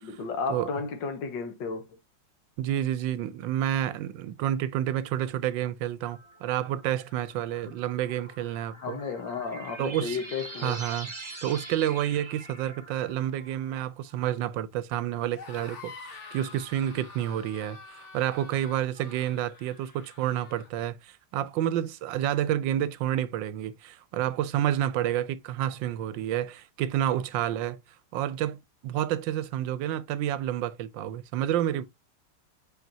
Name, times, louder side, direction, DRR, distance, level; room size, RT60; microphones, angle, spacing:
voice 1, 0.0-2.0 7.7-7.8 8.8-10.9, left 5 dB, 75° left, 1.9 m, -33 dB
voice 2, 2.6-9.0 9.8-10.2 10.6-11.1 11.4-27.8 28.1-31.8, right 11 dB, 85° right, 1.3 m, -29 dB
sound 1, 6.0-14.2, right 2 dB, 15° right, 1.8 m, -44 dB
sound 2, 15.2-20.7, left 4 dB, 45° left, 1.5 m, -47 dB
8.1 x 4.5 x 2.7 m
omnidirectional pair, 2.0 m